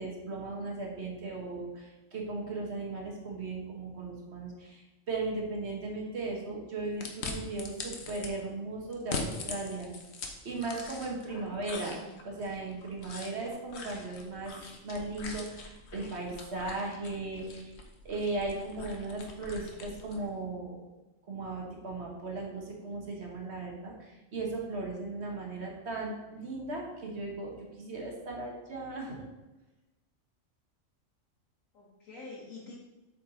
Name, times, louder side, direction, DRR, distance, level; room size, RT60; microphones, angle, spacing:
voice 1, 0.0-9.9 10.4-12.0 12.2-14.5 14.8-17.7 18.0-20.8 21.3-29.2, right 3 dB, 55° right, 0 dB, 1.4 m, -37 dB
sound 1, 7.0-8.3 8.9-11.3 11.6-20.2, left 4 dB, 60° left, 1.1 m, -42 dB
voice 2, 11.3-12.1 31.7-32.7, left 3 dB, 80° left, -5 dB, 1.6 m, -47 dB
7.6 x 4.6 x 3.7 m, 1.1 s
omnidirectional pair, 1.4 m